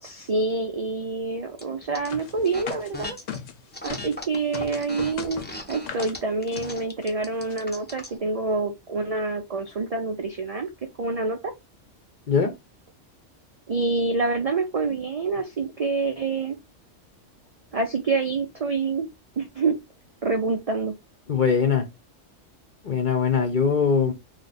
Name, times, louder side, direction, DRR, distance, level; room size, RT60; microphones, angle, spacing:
voice 1, 0.0-3.2 3.8-5.4 5.7-10.7 11.0-11.5 13.7-16.6 17.7-19.1 19.4-19.7 20.2-20.9, right 3 dB, 65° right, 0.3 m, -27 dB
sound 1, 1.6-2.1 2.4-3.4 3.7-8.2, left 1 dB, 15° left, 0.4 m, -38 dB
sound 2, 2.1-4.2 4.5-6.2 6.5-6.7 7.0-7.1 7.3-7.6, left 7 dB, 80° left, 1.0 m, -38 dB
voice 2, 21.3-21.9 22.8-24.1, left 6 dB, 50° left, 0.6 m, -21 dB
3.2 x 2.2 x 3.9 m
omnidirectional pair, 1.3 m